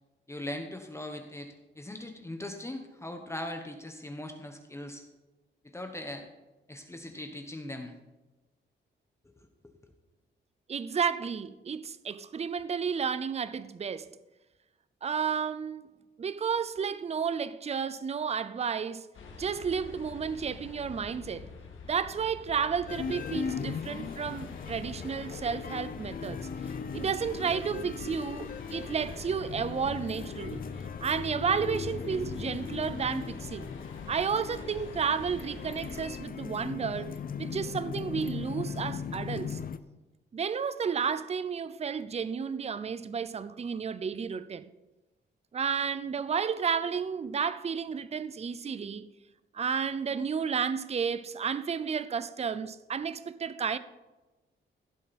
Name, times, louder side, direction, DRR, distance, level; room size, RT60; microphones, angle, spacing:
voice 1, 0.3-5.0 5.6-6.2 6.7-8.0 9.2-9.7, left 1 dB, 15° left, 1.0 m, -40 dB
voice 2, 10.7-14.1 15.0-15.9 16.2-19.1 19.4-21.5 21.9-26.5 26.9-30.7 31.0-33.7 34.1-39.6 40.3-44.6 45.5-49.1 49.5-53.8, right 6 dB, 30° right, 0.5 m, -32 dB
sound 1, 19.1-36.2, left 4 dB, 75° left, 2.0 m, -46 dB
sound 2, 22.9-39.8, left 6 dB, 45° left, 0.6 m, -38 dB
16.0 x 7.2 x 4.2 m
cardioid pair, 115°, 20 cm